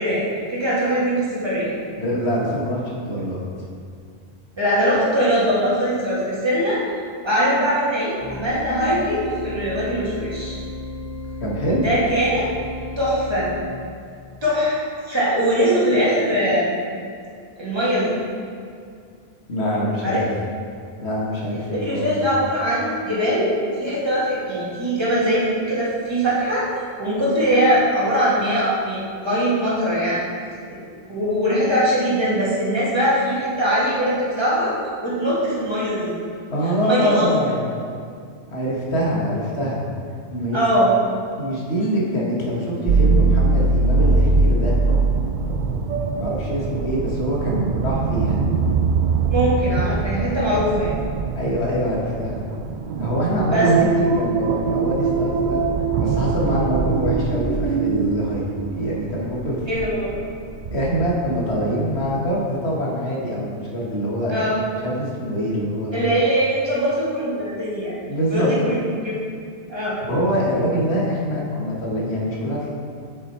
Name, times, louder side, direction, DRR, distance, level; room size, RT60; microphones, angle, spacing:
voice 1, 0.0-1.7 4.6-6.8 7.2-10.6 11.8-12.5 13.0-13.5 14.4-14.8 15.0-16.7 17.6-18.2 20.0-20.2 21.7-26.7 27.0-30.2 30.7-30.8 31.1-34.7 35.0-36.1 36.8-37.3 40.5-40.9 49.3-50.9 53.5-53.7 59.7-60.1 64.3-64.6 65.9-68.0 68.3-69.1 69.7-70.0, equal, 25° right, -8 dB, 2.1 m, -21 dB
voice 2, 2.0-3.6 11.4-11.8 19.5-20.3 21.0-22.2 36.5-37.7 38.5-39.8 40.3-40.6 41.4-44.7 46.1-48.4 51.3-52.4 53.0-55.7 56.0-59.6 60.7-64.5 64.8-66.0 68.0-68.5 70.0-72.7, equal, 70° left, -4 dB, 1.8 m, -24 dB
sound 1, 8.2-13.6, left 2 dB, 40° left, 1.5 m, -34 dB
sound 2, 42.9-61.6 62.0-62.2, right 4 dB, 55° right, 0.5 m, -22 dB
7.3 x 6.5 x 4.3 m, 2.3 s
omnidirectional pair, 1.1 m